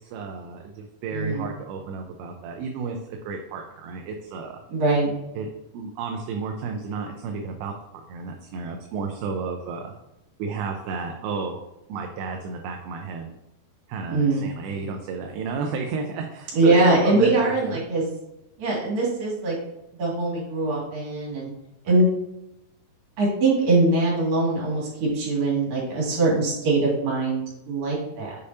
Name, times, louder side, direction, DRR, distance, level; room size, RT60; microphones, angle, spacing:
voice 1, 0.1-4.6 5.4-5.5 5.7-9.9 10.4-11.6 11.9-13.3 13.9-17.8 21.9-22.0, right 4 dB, 80° right, 3 dB, 2.4 m, -32 dB
voice 2, 1.1-1.5 4.7-5.1 14.1-14.5 16.5-18.1 18.6-19.6 20.0-21.5 21.9-22.1 23.2-28.3, right 2 dB, 65° right, -4 dB, 3.8 m, -22 dB
6.8 x 5.0 x 2.7 m, 0.91 s
omnidirectional pair, 4.5 m